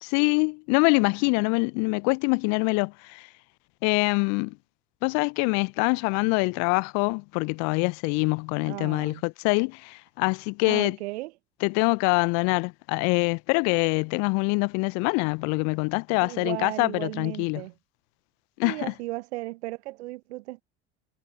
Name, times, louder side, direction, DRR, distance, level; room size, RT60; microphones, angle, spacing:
voice 1, 0.0-3.3 3.8-4.6 5.0-11.0 11.6-17.6 18.6-18.9, left 34 dB, 55° left, 0.7 m, -25 dB
voice 2, 8.6-9.2 10.7-11.3 16.2-17.7 18.6-20.6, right 19 dB, 65° right, 1.2 m, -35 dB
figure-of-eight pair, 65°, 35 cm